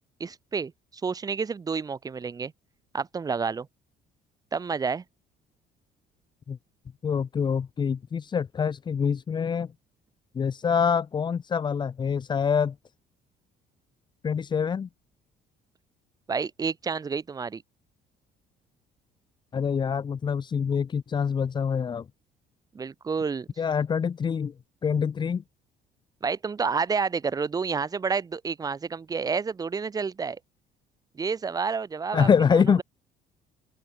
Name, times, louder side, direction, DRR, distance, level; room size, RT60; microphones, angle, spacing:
voice 1, 0.2-0.7 1.0-2.5 2.9-3.7 4.5-5.0 16.3-17.6 22.7-23.5 26.2-30.4 31.2-32.8, right 5 dB, 20° right, 6.3 m, -29 dB
voice 2, 7.0-9.7 10.3-12.8 14.2-14.9 19.5-22.1 23.6-24.5 24.8-25.4 32.1-32.8, left 6 dB, 25° left, 2.2 m, -25 dB
open air
cardioid pair, 180°, 17 cm